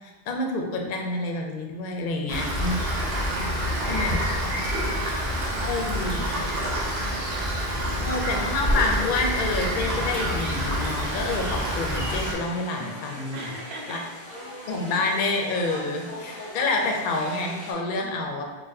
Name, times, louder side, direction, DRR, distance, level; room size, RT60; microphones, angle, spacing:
voice 1, 0.3-2.9 3.8-4.7 5.7-6.4 8.0-13.5 13.9-14.0 14.7-18.4, left 3 dB, 60° left, 1 dB, 0.6 m, -28 dB
voice 2, 2.1-2.5 3.5-8.0 13.3-14.0 16.3-16.5 17.9-18.4, right 2 dB, 55° right, -1 dB, 0.6 m, -43 dB
Rain, 2.3-12.3, equal, 80° right, 0.9 m, -27 dB
sound 1, 9.5-17.7, equal, 10° left, 0.9 m, -41 dB
4.0 x 2.4 x 2.6 m, 1.3 s
omnidirectional pair, 1.0 m